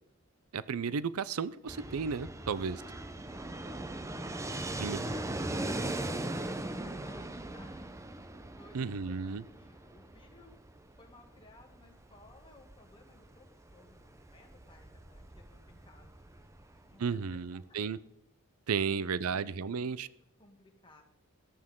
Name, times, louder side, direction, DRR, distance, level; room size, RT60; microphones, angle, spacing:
voice 1, 0.5-2.8 4.8-5.0 8.7-9.4 17.0-18.0 18.7-20.1, right 5 dB, 90° right, 18 dB, 0.5 m, -33 dB
Fixed-wing aircraft airplane, 1.7-17.4, right 1 dB, 15° right, 0.6 m, -40 dB
voice 2, 2.6-7.9 8.6-16.2 16.9-17.6 18.7-19.5 19.8-20.1 20.4-21.0, left 2 dB, 25° left, 1 dB, 2.1 m, -59 dB
14.0 x 12.0 x 3.7 m, 0.75 s
head